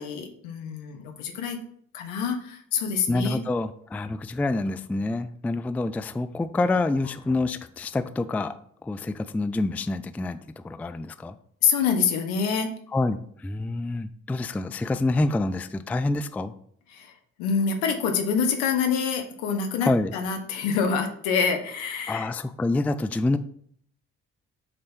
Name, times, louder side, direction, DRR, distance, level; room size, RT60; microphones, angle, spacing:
voice 1, 0.0-1.6 1.9-3.4 11.6-12.7 16.9-17.1 17.4-22.3, left 6 dB, 75° left, 5 dB, 1.1 m, -26 dB
voice 2, 3.1-8.5 8.8-11.3 12.9-13.2 13.4-16.5 19.8-20.1 22.1-23.4, left 2 dB, 5° left, 12 dB, 0.3 m, -27 dB
7.5 x 3.2 x 4.4 m, 0.64 s
figure-of-eight pair, 40°, 40 cm